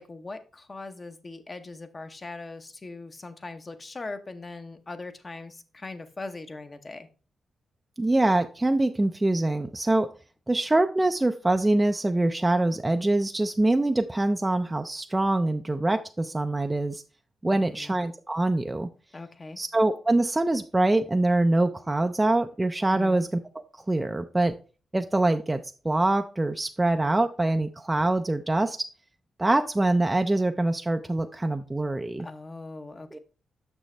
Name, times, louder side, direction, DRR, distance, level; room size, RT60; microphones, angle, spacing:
voice 1, 0.0-7.1 17.4-18.0 19.1-19.6 22.9-23.3 32.2-33.2, left 3 dB, 30° left, 8 dB, 0.9 m, -40 dB
voice 2, 8.0-10.1 10.5-17.0 17.4-18.9 19.6-23.3 23.9-24.5 24.9-28.8 29.4-32.3 33.1-33.2, right 2 dB, 15° right, 6 dB, 0.4 m, -24 dB
6.3 x 6.2 x 3.3 m, 0.36 s
cardioid pair, 75°, 0 cm